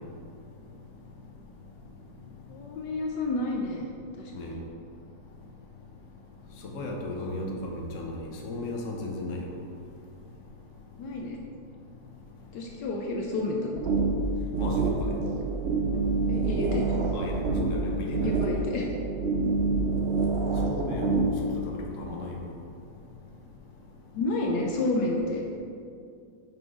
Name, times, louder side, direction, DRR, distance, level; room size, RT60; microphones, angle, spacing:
voice 1, 2.5-3.9 4.2-4.6 11.0-11.4 12.5-13.8 16.3-17.0 18.2-18.9 24.1-25.4, left 2 dB, 75° left, 0 dB, 1.3 m, -30 dB
voice 2, 6.6-9.5 14.6-15.1 17.1-18.3 20.6-22.4, left 2 dB, 50° left, -1 dB, 1.2 m, -35 dB
sound 1, 13.8-21.5, right 3 dB, 65° right, 0.6 m, -27 dB
6.0 x 5.0 x 4.8 m, 2.4 s
omnidirectional pair, 2.0 m